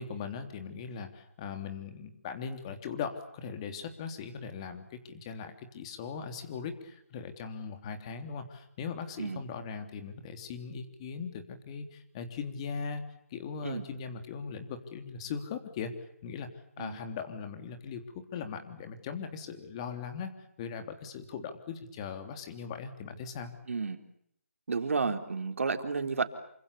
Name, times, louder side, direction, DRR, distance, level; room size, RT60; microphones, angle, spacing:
voice 1, 0.0-13.0 13.3-15.9 16.2-16.5 16.8-23.5, left 6 dB, 20° left, 7 dB, 3.3 m, -39 dB
voice 2, 23.7-24.0 24.7-26.2, right 4 dB, 65° right, 7 dB, 3.9 m, -31 dB
28.5 x 26.0 x 6.9 m, 0.72 s
hypercardioid pair, 165°, 8 cm